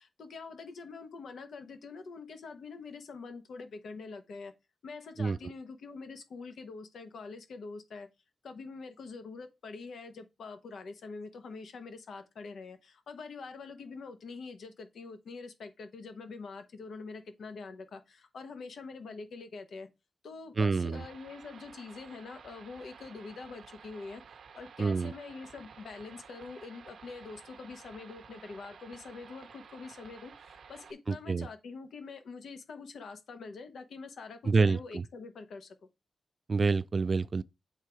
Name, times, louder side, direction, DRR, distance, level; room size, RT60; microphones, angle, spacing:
voice 1, 0.0-4.5 4.8-8.1 8.4-19.9 20.2-24.2 24.5-35.7, left 4 dB, 85° left, 1.1 m, -45 dB
voice 2, 20.6-21.0 24.8-25.1 31.1-31.5 34.5-35.0 36.5-37.4, right 4 dB, 40° right, 0.3 m, -27 dB
sound 1, 20.9-30.9, right 6 dB, 85° right, 0.8 m, -53 dB
8.1 x 3.7 x 4.5 m
wide cardioid pair, 130°, 0 cm